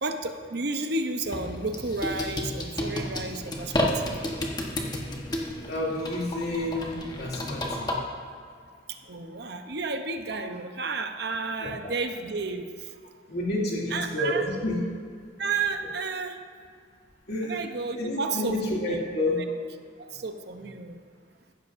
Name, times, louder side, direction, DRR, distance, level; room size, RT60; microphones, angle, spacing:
voice 1, 0.0-4.2 8.9-12.6 13.9-14.4 15.4-16.4 17.4-18.6 18.9-19.0 20.0-21.0, right 3 dB, 60° right, 7 dB, 0.8 m, -32 dB
sound 1, 1.2-7.9, left 1 dB, 25° left, 1.2 m, -32 dB
voice 2, 5.7-7.9 11.6-11.9 13.3-14.8 17.3-17.6 17.9-19.4, left 1 dB, 60° left, -4 dB, 2.5 m, -29 dB
15.0 x 12.5 x 2.6 m, 2.2 s
head